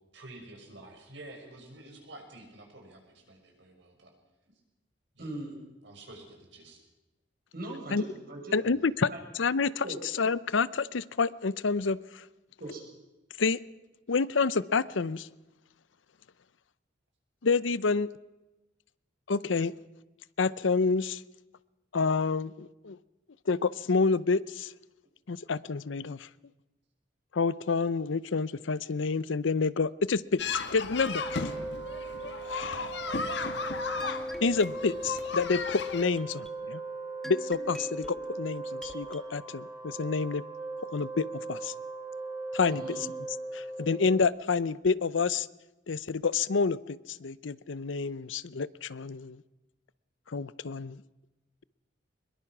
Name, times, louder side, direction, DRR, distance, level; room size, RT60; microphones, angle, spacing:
voice 1, 0.1-4.1 5.1-5.3 5.8-6.8 8.7-8.8, right 2 dB, 70° right, 2 dB, 6.1 m, -49 dB
voice 2, 5.2-5.5 7.5-8.6 9.1-9.2 9.8-10.0 12.6-12.8 42.6-43.0, right 1 dB, 50° right, 1 dB, 6.2 m, -39 dB
voice 3, 8.5-9.1 9.4-9.8 10.2-12.0 13.4-13.6 14.1-15.3 17.4-18.1 19.3-19.7 20.4-21.2 21.9-23.0 23.5-24.7 25.3-26.3 27.3-31.2 32.4-33.0 34.4-36.8 37.3-40.4 40.9-41.7 42.5-42.8 43.5-45.5 45.9-49.4 50.3-51.0, left 4 dB, 85° left, 18 dB, 0.7 m, -28 dB
sound 1, 30.4-36.0, left 4 dB, 65° left, 1.5 m, -35 dB
Wind instrument woodwind instrument, 30.9-44.3, right 1 dB, 25° right, 6.5 m, -38 dB
sound 2, 34.0-39.2, equal, ahead, 1.3 m, -48 dB
23.5 x 21.5 x 6.1 m, 1.0 s
head